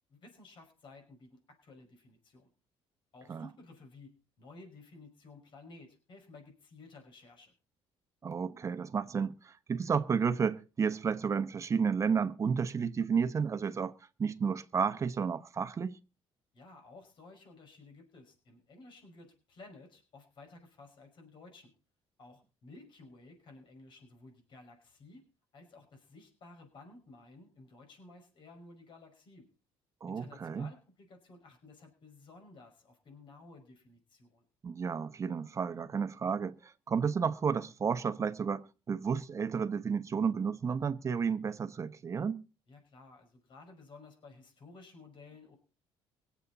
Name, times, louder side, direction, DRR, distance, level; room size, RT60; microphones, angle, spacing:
voice 1, 0.1-2.5 3.1-4.1 4.4-7.5 16.5-21.7 22.2-25.2 25.5-29.5 30.1-34.5 42.7-45.6, left 3 dB, 50° left, 5.5 m, -55 dB
voice 2, 8.2-13.9 14.2-16.0 30.0-30.7 34.6-42.4, right 6 dB, 30° right, 1.0 m, -32 dB
24.0 x 8.3 x 4.1 m
cardioid pair, 140°, 10 cm